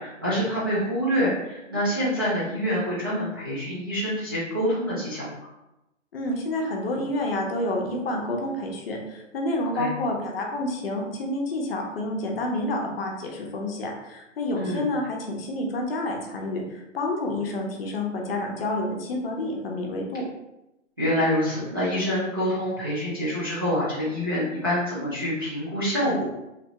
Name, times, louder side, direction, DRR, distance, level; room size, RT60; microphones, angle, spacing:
voice 1, 0.0-5.5 9.7-9.9 14.6-14.8 21.0-26.2, equal, 20° right, -11 dB, 0.3 m, -26 dB
voice 2, 6.1-20.2, left 1 dB, 50° left, 0 dB, 0.7 m, -29 dB
2.9 x 2.1 x 2.8 m, 0.93 s
hypercardioid pair, 145°, 38 cm